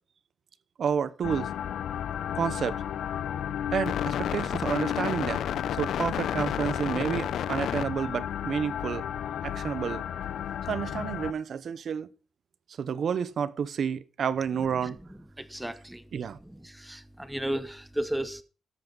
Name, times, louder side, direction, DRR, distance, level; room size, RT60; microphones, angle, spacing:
voice 1, 0.8-1.5 2.3-2.8 3.7-5.4 5.7-9.0 9.4-10.0 10.7-12.1 12.8-15.0 16.1-16.4, right 7 dB, 65° right, 0.8 m, -30 dB
sound 1, 1.2-11.3, left 10 dB, 85° left, 0.6 m, -31 dB
voice 2, 15.4-16.0 16.6-18.4, right 1 dB, 5° right, 0.8 m, -33 dB
13.5 x 11.0 x 3.9 m
cardioid pair, 100°, 0 cm